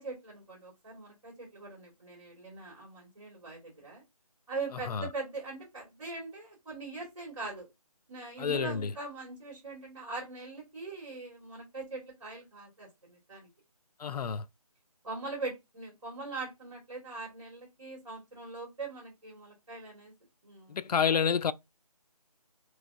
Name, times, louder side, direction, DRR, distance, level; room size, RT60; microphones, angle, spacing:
voice 1, 0.0-4.0 4.5-7.7 8.1-13.5 15.0-20.1 20.4-20.8, right 3 dB, 55° right, 2.1 m, -42 dB
voice 2, 8.4-8.9 14.0-14.5 20.7-21.5, left 7 dB, 80° left, 0.4 m, -29 dB
3.2 x 3.2 x 2.5 m
figure-of-eight pair, 175°, 20 cm